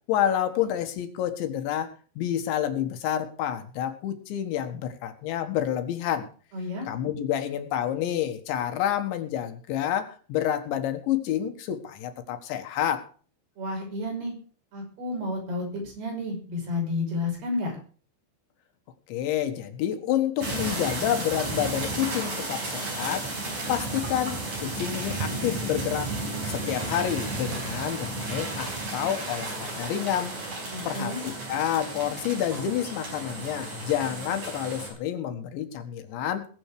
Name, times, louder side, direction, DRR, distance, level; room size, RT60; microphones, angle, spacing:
voice 1, 0.1-6.3 6.9-13.1 19.1-23.4 23.7-26.1 26.5-30.4 30.9-36.5, left 10 dB, 80° left, 8 dB, 3.9 m, -29 dB
voice 2, 6.5-6.9 13.6-14.3 14.7-17.8 30.7-31.2, left 2 dB, 60° right, 1 dB, 7.5 m, -31 dB
sound 1, 20.4-34.9, right 2 dB, 40° right, 6.1 m, -33 dB
20.5 x 8.3 x 4.8 m, 0.41 s
omnidirectional pair, 5.2 m